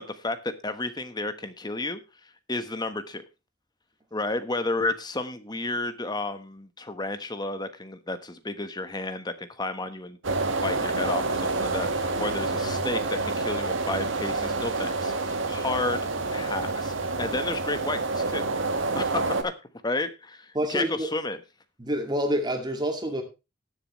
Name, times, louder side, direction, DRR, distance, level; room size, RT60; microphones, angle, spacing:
voice 1, 0.0-2.0 2.5-3.2 4.1-10.2 10.6-18.5 18.9-19.5 19.8-21.4, left 2 dB, 20° left, 10 dB, 1.2 m, -32 dB
sound 1, 10.2-19.4, right 3 dB, 70° right, 1.7 m, -28 dB
voice 2, 20.5-21.1 21.8-23.2, right 1 dB, 20° right, 5 dB, 2.1 m, -27 dB
19.0 x 7.3 x 3.1 m, 0.27 s
head